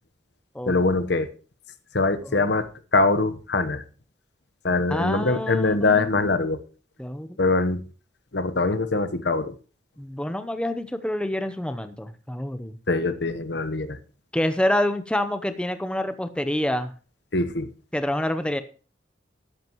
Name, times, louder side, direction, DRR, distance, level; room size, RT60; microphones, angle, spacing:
voice 1, 0.7-1.3 1.9-2.6 2.9-3.8 4.6-6.6 7.4-7.8 8.3-9.5 12.9-14.0 17.3-17.7, left 3 dB, 65° left, 11 dB, 1.0 m, -23 dB
voice 2, 4.9-6.1 7.0-7.4 10.0-12.8 14.3-16.9 17.9-18.6, left 1 dB, 5° left, 10 dB, 0.7 m, -27 dB
13.5 x 11.0 x 3.0 m, 0.37 s
head